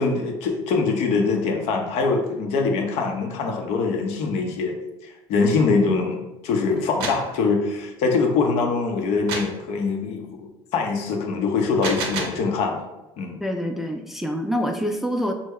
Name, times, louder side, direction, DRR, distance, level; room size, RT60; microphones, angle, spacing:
voice 1, 0.0-4.8 5.0-12.9 13.2-13.4, left 4 dB, 70° left, 3 dB, 0.6 m, -23 dB
sound 1, 6.8-7.3 9.3-9.6 11.6-12.5, right 3 dB, 85° right, 0.6 m, -29 dB
voice 2, 13.4-15.3, equal, 5° right, 4 dB, 0.3 m, -26 dB
3.3 x 2.0 x 3.5 m, 0.99 s
supercardioid pair, 85°, 12 cm